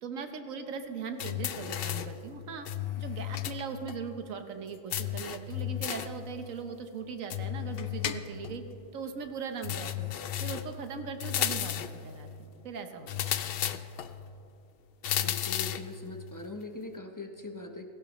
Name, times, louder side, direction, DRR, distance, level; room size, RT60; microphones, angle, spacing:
voice 1, 0.0-2.7 3.0-8.6 8.9-10.1 10.4-13.5, right 5 dB, 80° right, 7 dB, 1.3 m, -39 dB
sound 1, 1.2-2.2 2.7-3.6 3.9-4.0 4.9-6.2 7.3-8.6 9.6-10.7 11.2-12.0 13.1-14.1 15.0-15.9, left 11 dB, 60° left, 0.6 m, -33 dB
voice 2, 15.2-17.9, left 2 dB, 20° left, 4 dB, 0.6 m, -41 dB
17.5 x 15.5 x 3.1 m, 2.9 s
omnidirectional pair, 1.4 m